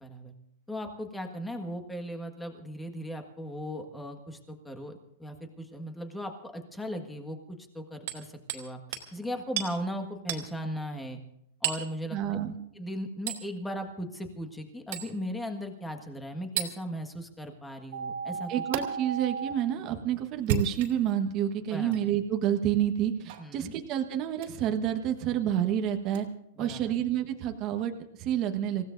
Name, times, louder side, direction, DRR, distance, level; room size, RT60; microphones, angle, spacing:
voice 1, 0.0-0.3 0.7-8.8 9.1-11.2 11.6-12.4 12.8-18.5 21.7-22.0 23.4-23.7 26.6-26.8, equal, 5° left, 5 dB, 1.6 m, -37 dB
Hammer, 8.1-8.7 8.9-9.1 9.6-9.7 10.3-10.5 11.6-11.9 13.3-13.5 14.9-15.1 16.6-16.7 18.7-18.8 20.3-21.1 21.9-22.0 23.3-23.5 24.4-24.6 26.1-26.2, right 8 dB, 55° right, 2.6 m, -32 dB
voice 2, 12.1-12.6 18.5-26.3 26.6-28.8, right 10 dB, 30° right, 5 dB, 1.2 m, -29 dB
sound 1, 17.9-19.5, right 5 dB, 75° right, 2.6 m, -35 dB
28.0 x 16.0 x 2.6 m, 0.76 s
supercardioid pair, 160°, 0 cm